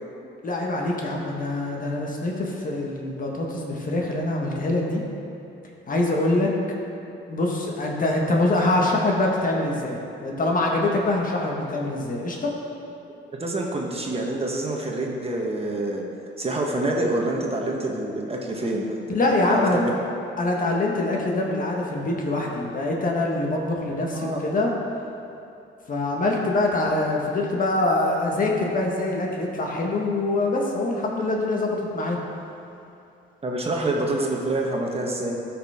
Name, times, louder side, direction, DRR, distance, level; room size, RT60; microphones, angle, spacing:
voice 1, 0.4-5.0 5.9-6.6 7.3-12.6 19.1-19.8 20.4-24.7 25.9-32.2, left 2 dB, 45° left, -1 dB, 1.6 m, -24 dB
voice 2, 13.4-16.0 16.4-19.0 19.5-19.9 24.1-24.4 33.4-35.4, right 2 dB, 30° right, 0 dB, 1.3 m, -26 dB
13.0 x 6.1 x 3.7 m, 2.7 s
cardioid pair, 90°, 20 cm